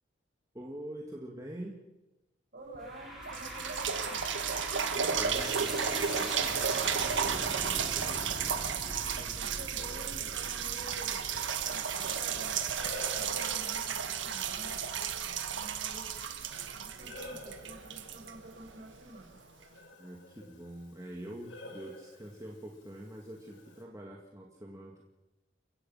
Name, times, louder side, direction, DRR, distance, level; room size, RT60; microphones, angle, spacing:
voice 1, 0.5-1.8 5.0-8.2 20.0-25.0, right 1 dB, 15° right, -2 dB, 2.2 m, -45 dB
voice 2, 2.5-4.2 9.0-11.3 11.6-14.8 15.5-16.1 16.7-19.4, right 1 dB, 50° right, 0 dB, 6.7 m, -49 dB
sound 1, 2.8-14.1, right 1 dB, ahead, 5.9 m, -43 dB
sound 2, 2.8-2.9 3.3-19.0 19.6-19.7, right 7 dB, 80° right, 1.5 m, -33 dB
Breathing, 10.4-23.8, left 1 dB, 80° left, 4.6 m, -52 dB
29.5 x 15.5 x 5.7 m, 1.0 s
head